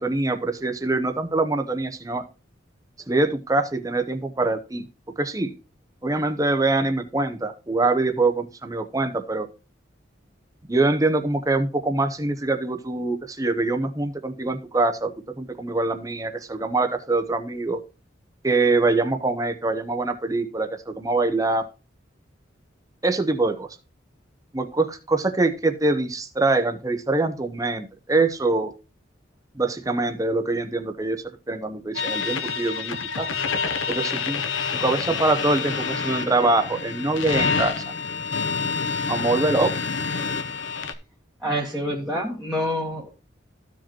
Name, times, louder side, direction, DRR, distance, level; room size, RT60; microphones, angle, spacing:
voice 1, 0.0-2.2 3.1-4.8 5.2-5.5 6.0-9.5 10.7-17.8 18.4-21.6 23.0-23.7 24.5-28.7 29.6-33.3 33.9-34.4 34.8-37.8 39.1-39.7, right 2 dB, 15° right, 7 dB, 0.8 m, -24 dB
sound 1, 31.9-40.9, left 5 dB, 80° left, 0.8 m, -27 dB
voice 2, 41.4-43.1, equal, ahead, -5 dB, 1.4 m, -27 dB
14.5 x 4.9 x 3.0 m, 0.32 s
head